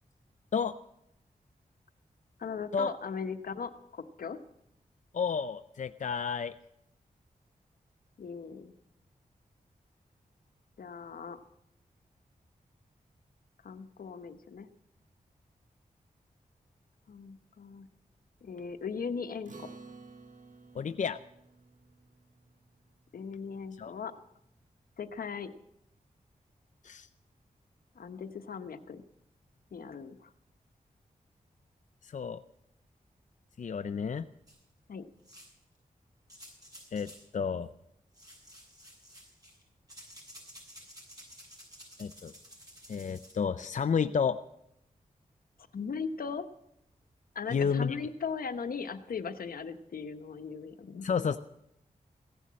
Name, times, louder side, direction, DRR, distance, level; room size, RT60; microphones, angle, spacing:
voice 1, 2.4-4.4 8.2-8.7 10.8-11.4 13.6-14.7 17.1-17.9 18.4-19.7 23.1-24.1 25.0-25.5 27.9-29.0 29.7-30.3 34.9-35.1 45.7-46.5 47.3-51.1, left 5 dB, 85° left, 9 dB, 1.1 m, -38 dB
voice 2, 5.1-6.5 20.7-21.2 23.8-23.9 26.8-27.1 32.0-32.4 33.6-34.2 36.9-37.7 42.0-42.3 42.9-44.4 47.5-48.0 51.0-51.4, left 6 dB, 60° left, 9 dB, 0.5 m, -31 dB
Acoustic guitar, 19.5-24.2, right 4 dB, 60° right, 1.5 m, -54 dB
sound 1, 34.5-34.6 35.2-35.6 36.3-37.3 38.1-39.6 39.9-43.3, equal, 25° right, 7.0 m, -52 dB
16.5 x 11.0 x 7.5 m, 0.79 s
wide cardioid pair, 80°, 15 cm